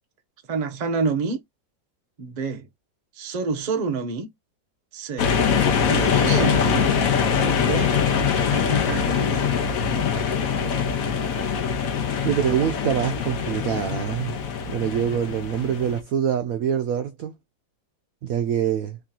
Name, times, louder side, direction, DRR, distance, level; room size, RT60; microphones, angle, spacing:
voice 1, 0.5-1.4 2.2-2.7 3.1-4.3 4.9-5.4 5.7-6.9 7.4-8.0 8.5-9.4, right 4 dB, 50° right, 0.4 m, -28 dB
sound 1, 5.2-16.0, left 6 dB, 60° left, 1.0 m, -23 dB
voice 2, 12.2-14.4 14.7-17.4 18.2-19.0, right 9 dB, 80° right, 0.7 m, -25 dB
3.6 x 2.9 x 3.7 m
omnidirectional pair, 2.0 m